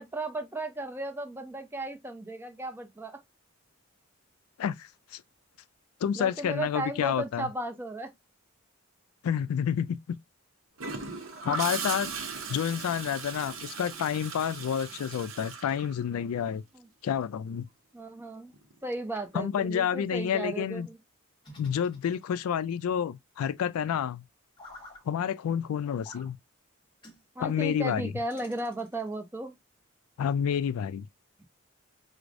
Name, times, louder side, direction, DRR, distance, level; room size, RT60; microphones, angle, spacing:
voice 1, 0.0-3.2 6.2-8.1 11.5-11.6 16.7-16.9 17.9-18.5 18.8-21.0 27.4-29.5, right 2 dB, 10° right, 0.4 m, -35 dB
voice 2, 4.6-5.2 6.0-7.5 9.2-10.2 11.4-12.1 12.5-16.6 17.0-17.7 19.3-20.9 21.6-24.2 25.1-26.4 27.4-28.1 30.2-31.1, left 8 dB, 85° left, 0.3 m, -29 dB
Gurgling / Toilet flush, 10.8-16.5 18.5-18.8, right 5 dB, 65° right, 0.7 m, -38 dB
sound 1, 21.4-22.6 24.6-25.0 26.0-26.3 27.0-27.2 28.3-29.2, left 1 dB, 20° left, 1.0 m, -50 dB
4.7 x 2.0 x 2.5 m
head